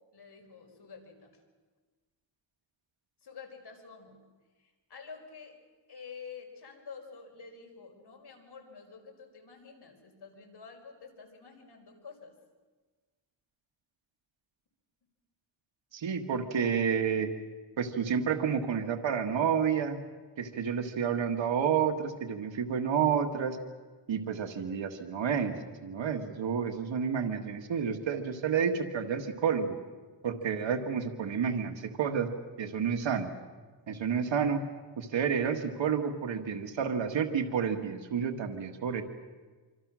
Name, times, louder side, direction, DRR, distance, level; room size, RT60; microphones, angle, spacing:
voice 1, 0.1-1.3 3.2-4.2 4.6-5.6 5.9-12.3 30.3-30.4, left 5 dB, 60° left, 3 dB, 5.1 m, -49 dB
voice 2, 15.9-17.3 17.8-20.0 20.4-23.6 24.1-25.6 25.8-29.8 30.2-32.3 32.6-33.3 33.9-34.6 35.0-39.0, right 7 dB, 85° right, 4 dB, 1.7 m, -30 dB
26.0 x 25.5 x 6.2 m, 1.4 s
wide cardioid pair, 85°, 44 cm